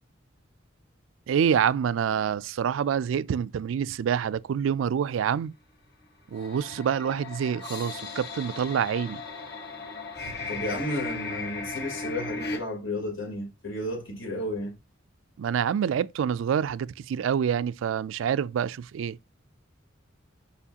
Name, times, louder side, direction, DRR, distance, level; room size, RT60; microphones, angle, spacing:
voice 1, 1.3-5.5 6.3-9.2 15.4-19.2, right 8 dB, 75° right, 0.3 m, -27 dB
sound 1, 6.3-12.6, left 3 dB, 60° left, 1.5 m, -36 dB
voice 2, 10.5-14.7, left 1 dB, 80° left, 3.4 m, -33 dB
6.9 x 5.2 x 2.8 m
head